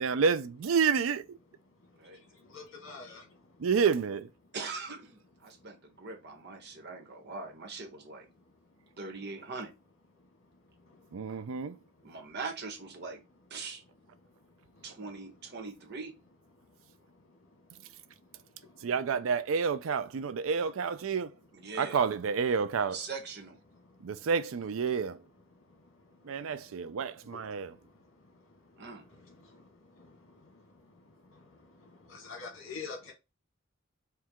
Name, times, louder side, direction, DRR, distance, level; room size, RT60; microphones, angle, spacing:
voice 1, 0.0-1.4 3.6-4.3 11.1-11.8 18.8-21.3 21.8-23.0 24.0-25.2 26.2-27.7, right 6 dB, 85° right, 0.4 m, -29 dB
voice 2, 2.5-3.2 32.1-33.1, left 5 dB, 80° left, 1.7 m, -42 dB
voice 3, 4.5-8.3 9.0-9.7 12.0-13.2 13.5-13.8 14.8-16.2 21.5-22.0 22.9-23.6 28.8-29.1, right 4 dB, 55° right, 1.2 m, -41 dB
4.5 x 2.3 x 3.6 m
head